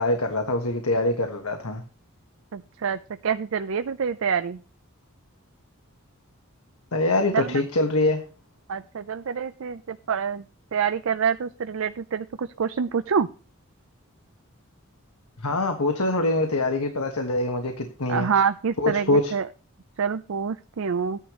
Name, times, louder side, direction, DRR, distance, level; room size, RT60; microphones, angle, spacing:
voice 1, 0.0-1.8 6.9-8.2 15.4-18.3 18.8-19.3, left 2 dB, 85° left, 4 dB, 1.3 m, -24 dB
voice 2, 2.5-4.6 7.3-7.6 8.7-10.4 10.7-13.3 18.1-19.5 20.0-21.2, right 6 dB, 65° right, 11 dB, 0.4 m, -26 dB
13.0 x 9.9 x 3.1 m, 0.38 s
head